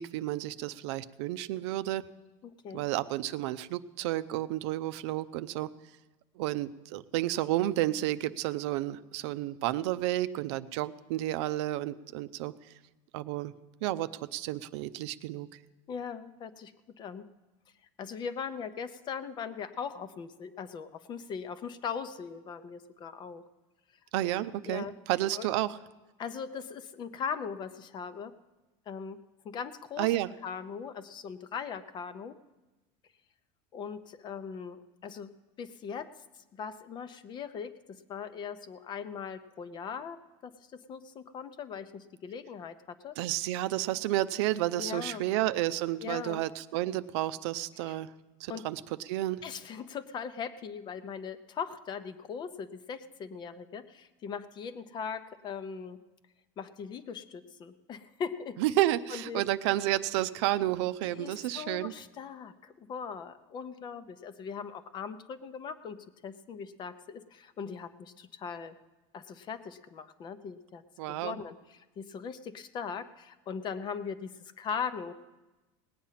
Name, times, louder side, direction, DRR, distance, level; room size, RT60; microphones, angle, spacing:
voice 1, 0.0-2.0 2.7-5.7 6.4-12.5 13.1-13.5 13.8-15.5 24.1-25.8 30.0-30.3 43.2-48.1 48.4-48.8 49.1-49.4 58.6-61.9 71.0-71.4, right 15 dB, 80° right, 14 dB, 0.6 m, -31 dB
voice 2, 2.4-2.8 15.9-16.7 17.0-17.3 18.0-23.4 24.2-24.3 24.6-24.9 25.3-25.5 26.2-28.3 28.9-30.1 30.4-32.3 33.7-35.3 35.6-36.1 36.5-43.2 44.8-45.3 46.0-46.4 47.8-48.0 48.5-48.7 49.4-56.0 56.6-58.6 59.1-59.4 61.1-66.0 66.2-68.7 69.1-75.1, left 6 dB, 30° left, 12 dB, 0.7 m, -40 dB
19.0 x 8.6 x 5.7 m, 1.1 s
cardioid pair, 155°, 14 cm